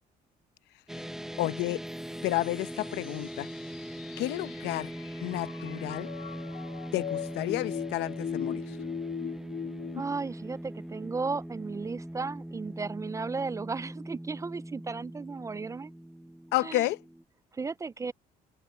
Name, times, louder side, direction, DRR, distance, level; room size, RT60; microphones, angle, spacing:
sound 1, 0.9-17.2, right 1 dB, 5° right, 0.7 m, -41 dB
voice 1, 1.4-1.8 2.2-3.5 4.2-4.9 5.2-6.1 6.9-8.8 16.5-17.0, left 17 dB, 85° left, 0.8 m, -31 dB
sound 2, 1.9-10.0, left 10 dB, 60° left, 2.2 m, -40 dB
voice 2, 10.0-15.9 16.6-16.9 17.5-18.1, right 4 dB, 20° right, 0.3 m, -35 dB
cardioid pair, 110°, 17 cm